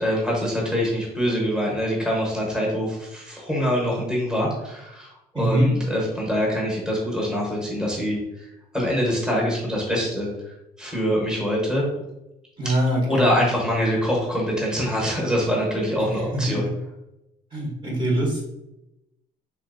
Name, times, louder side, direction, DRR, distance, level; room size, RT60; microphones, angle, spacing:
voice 1, 0.0-8.2 8.7-10.3 10.8-11.8 13.1-16.6, equal, 5° right, -4 dB, 1.0 m, -24 dB
voice 2, 5.3-5.7 12.6-13.3 16.0-16.7 17.5-18.4, right 1 dB, 30° right, -3 dB, 1.0 m, -23 dB
3.3 x 2.8 x 2.6 m, 0.90 s
cardioid pair, 110°, 17 cm